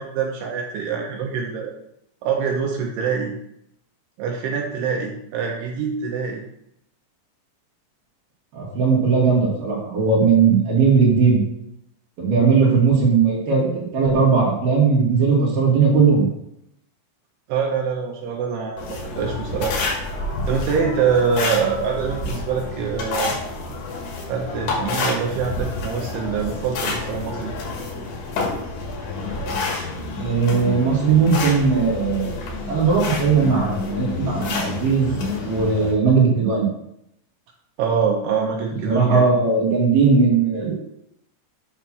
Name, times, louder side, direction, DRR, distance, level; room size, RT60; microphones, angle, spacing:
voice 1, 0.0-1.7 2.2-3.3 4.2-6.4 12.6-12.7 17.5-19.8 20.5-23.3 24.3-27.5 37.8-39.3, right 6 dB, 80° right, 0 dB, 2.3 m, -24 dB
voice 2, 8.5-11.4 12.2-16.3 30.2-32.3 32.7-35.1 35.4-36.7 38.8-40.7, right 5 dB, 55° right, -4 dB, 2.9 m, -18 dB
sound 1, 18.8-35.9, left 3 dB, 65° left, 3.2 m, -28 dB
8.5 x 3.4 x 5.9 m, 0.76 s
omnidirectional pair, 5.6 m